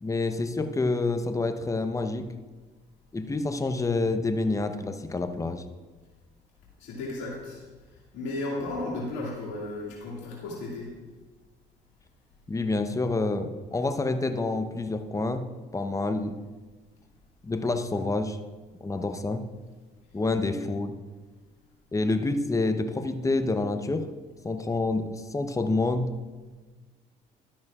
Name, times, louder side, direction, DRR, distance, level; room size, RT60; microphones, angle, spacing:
voice 1, 0.0-2.3 3.1-5.7 12.5-16.4 17.4-18.4 18.8-19.4 20.1-20.9 21.9-24.1 24.4-26.1, left 3 dB, 20° left, 8 dB, 0.8 m, -28 dB
voice 2, 6.8-7.6 8.1-10.9, left 2 dB, 80° left, -4 dB, 2.2 m, -34 dB
12.0 x 10.0 x 2.4 m, 1.3 s
supercardioid pair, 60°, 18 cm